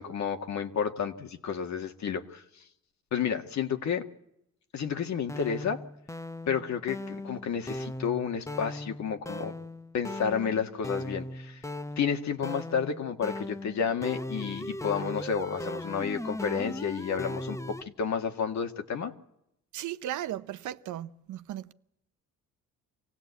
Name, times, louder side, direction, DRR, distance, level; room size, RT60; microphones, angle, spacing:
voice 1, 0.0-2.4 3.1-4.1 4.7-5.8 6.5-9.5 9.9-11.6 12.0-19.1, left 7 dB, 65° left, 1.9 m, -31 dB
sound 1, 5.2-17.8, left 1 dB, 10° left, 0.9 m, -38 dB
voice 2, 19.7-21.7, right 12 dB, 75° right, 0.8 m, -36 dB
25.5 x 16.5 x 8.3 m
cardioid pair, 90°, 30 cm